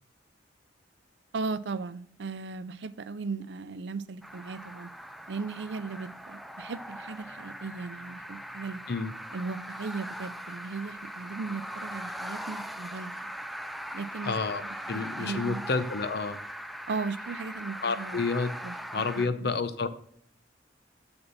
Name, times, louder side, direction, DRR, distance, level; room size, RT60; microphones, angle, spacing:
voice 1, 1.3-4.9 5.3-8.8 9.3-13.3 13.9-14.4 14.9-15.7 16.9-18.2 18.6-18.7 19.2-19.5, right 4 dB, 70° right, 14 dB, 0.5 m, -37 dB
sound 1, 4.2-19.3, equal, ahead, 0.3 m, -40 dB
voice 2, 14.2-16.4 17.8-18.5 18.9-19.9, left 4 dB, 60° left, 12 dB, 0.6 m, -30 dB
7.1 x 6.7 x 4.1 m, 0.66 s
head